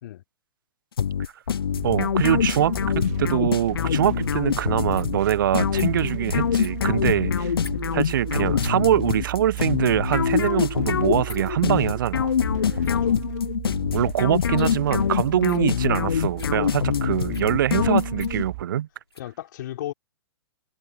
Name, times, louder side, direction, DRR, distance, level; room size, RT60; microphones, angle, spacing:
sound 1, 1.0-18.5, left 8 dB, 70° left, 0.6 m, -25 dB
sound 2, 1.7-18.6, right 22 dB, 40° right, 1.8 m, -36 dB
voice 1, 1.8-7.5 7.9-12.3 13.9-18.9, right 11 dB, 55° right, 0.6 m, -23 dB
sound 3, 4.0-19.4, left 3 dB, 85° left, 3.1 m, -49 dB
voice 2, 12.6-13.2 16.9-17.1 19.2-19.9, left 13 dB, 50° left, 4.0 m, -36 dB
figure-of-eight pair, 115°, 13 cm